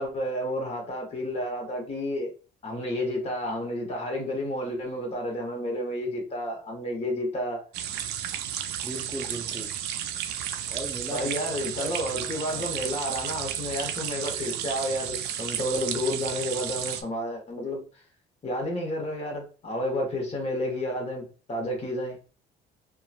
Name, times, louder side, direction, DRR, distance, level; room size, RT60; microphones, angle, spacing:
voice 1, 0.0-2.3 2.6-7.6 11.1-17.8 18.4-22.2, left 1 dB, 35° left, 1.1 m, -31 dB
sound 1, 7.7-17.0, right 10 dB, 80° right, 0.4 m, -33 dB
voice 2, 8.8-9.7 10.7-11.3 11.8-12.7, right 1 dB, ahead, 0.7 m, -38 dB
2.8 x 2.3 x 2.5 m
cardioid pair, 110°, 17 cm